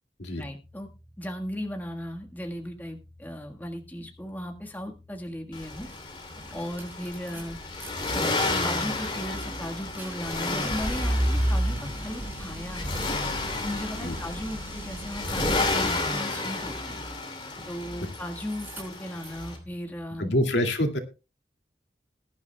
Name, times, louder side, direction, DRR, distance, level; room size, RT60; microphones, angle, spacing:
voice 1, 0.4-0.9 1.2-5.9 6.5-7.6 8.1-11.8 12.0-13.0 13.6-17.0 17.7-20.3, equal, 10° left, 3 dB, 1.5 m, -36 dB
sound 1, 0.6-20.1, equal, 35° right, 2.6 m, -47 dB
Accelerating revving vroom, 5.5-19.6, left 2 dB, 30° left, 2.9 m, -32 dB
sound 2, 5.9-6.0 6.4-7.9 8.2-16.0 17.5-18.2 18.4-19.4, right 1 dB, 10° right, 5.3 m, -33 dB
voice 2, 20.2-21.0, left 1 dB, 90° left, 4 dB, 2.2 m, -25 dB
20.5 x 11.0 x 2.2 m, 0.30 s
head